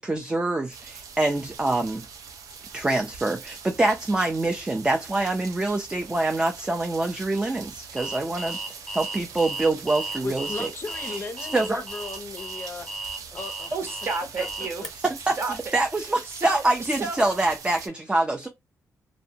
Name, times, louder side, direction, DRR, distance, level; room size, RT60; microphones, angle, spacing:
voice 1, 0.0-2.0 2.7-8.6 8.9-10.7 11.5-11.8 15.0-15.4 15.7-18.5, right 2 dB, 15° right, 0.4 m, -25 dB
sound 1, 0.7-17.9, right 6 dB, 75° right, 0.5 m, -42 dB
Alarm, 8.0-14.9, right 2 dB, 5° left, 0.8 m, -35 dB
voice 2, 10.2-13.7 14.4-14.5, left 4 dB, 40° left, 0.5 m, -37 dB
voice 3, 13.7-14.9 15.4-15.5 16.3-16.6 17.0-17.2, right 3 dB, 45° right, 0.9 m, -30 dB
2.6 x 2.0 x 2.7 m
cardioid pair, 95°, 6 cm